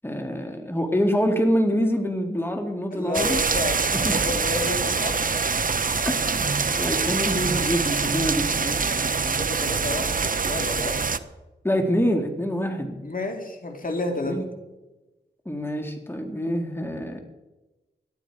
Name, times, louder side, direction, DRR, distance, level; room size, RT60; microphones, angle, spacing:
voice 1, 0.0-3.4 3.9-4.2 6.0-9.1 11.6-13.0 14.3-14.4 15.5-17.2, equal, 10° left, 4 dB, 2.3 m, -26 dB
voice 2, 2.9-5.2 9.2-11.0 13.0-14.4, left 2 dB, 45° left, 4 dB, 2.4 m, -31 dB
sound 1, 3.1-11.2, right 4 dB, 45° right, 0.8 m, -24 dB
18.0 x 12.0 x 4.8 m, 1.1 s
cardioid pair, 50°, 19 cm